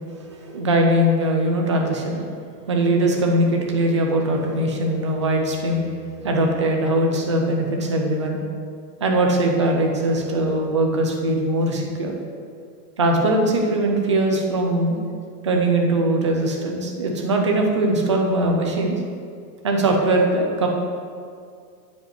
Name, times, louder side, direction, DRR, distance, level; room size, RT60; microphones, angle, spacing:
voice 1, 0.3-2.2 2.7-5.8 6.2-8.4 9.0-12.1 13.0-15.0 15.4-19.0 19.6-20.7, right 1 dB, 20° right, 1 dB, 0.3 m, -21 dB
9.2 x 5.1 x 7.8 m, 2.3 s
supercardioid pair, 165°, 48 cm